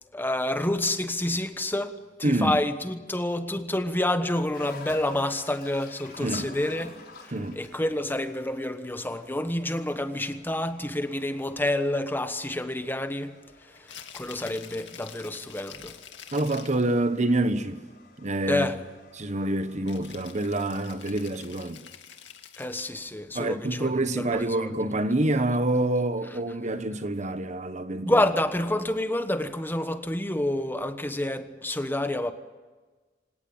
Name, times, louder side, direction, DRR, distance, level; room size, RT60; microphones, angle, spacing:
voice 1, 0.1-6.9 7.2-13.4 14.1-15.9 18.5-18.8 22.6-23.9 24.3-24.7 28.0-32.3, left 1 dB, 10° left, 1.2 m, -28 dB
voice 2, 2.2-2.6 6.2-6.5 7.3-7.6 16.3-17.8 18.2-18.7 19.1-21.8 23.3-28.1, right 2 dB, 40° right, 1.1 m, -27 dB
sound 1, 4.5-21.4, left 3 dB, 60° left, 5.0 m, -51 dB
Rattle (instrument), 13.8-16.9 19.9-23.1, left 8 dB, 75° left, 2.3 m, -47 dB
26.0 x 18.5 x 8.9 m
head